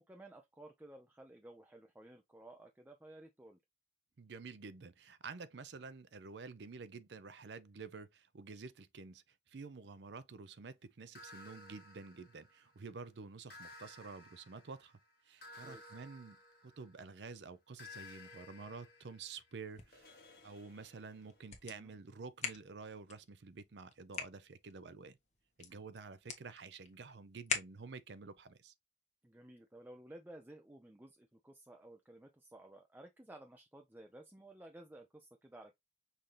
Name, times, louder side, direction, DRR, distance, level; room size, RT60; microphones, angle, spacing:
voice 1, 0.0-3.6 15.6-15.9 21.7-21.9 29.2-35.7, right 1 dB, 10° right, 0.5 m, -55 dB
voice 2, 4.2-15.0 15.2-20.2 20.4-25.2 25.6-28.7, right 4 dB, 70° right, 0.5 m, -50 dB
sound 1, 11.1-12.9 13.5-17.2 17.8-21.5, left 2 dB, 55° left, 1.3 m, -56 dB
sound 2, 19.5-28.2, left 5 dB, 40° left, 1.1 m, -46 dB
5.7 x 2.7 x 3.2 m
head